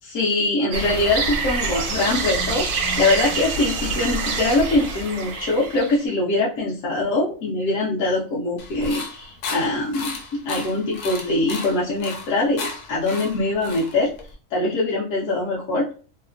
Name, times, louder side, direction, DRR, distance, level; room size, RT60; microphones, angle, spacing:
voice 1, 0.0-10.1 10.4-14.1 14.5-15.9, left 2 dB, 65° left, -5 dB, 0.9 m, -23 dB
sound 1, 0.7-6.0, right 4 dB, 85° right, 1.1 m, -26 dB
sound 2, 8.6-14.3, left 3 dB, 85° left, 1.2 m, -34 dB
2.9 x 2.1 x 2.4 m, 0.38 s
omnidirectional pair, 1.6 m